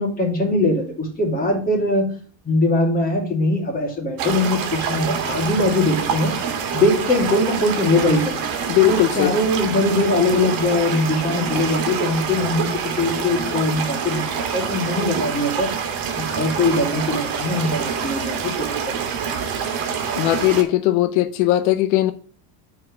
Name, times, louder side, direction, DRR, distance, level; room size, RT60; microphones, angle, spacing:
voice 1, 0.0-2.1 2.4-6.3 6.7-8.4 8.9-15.7 16.1-18.9, left 2 dB, 20° left, 2.9 m, -21 dB
sound 1, 4.2-20.6, right 6 dB, 50° right, 1.9 m, -26 dB
voice 2, 8.7-9.3 20.2-22.1, left 15 dB, 80° left, 0.8 m, -18 dB
7.7 x 4.8 x 6.5 m
cardioid pair, 140°, 43 cm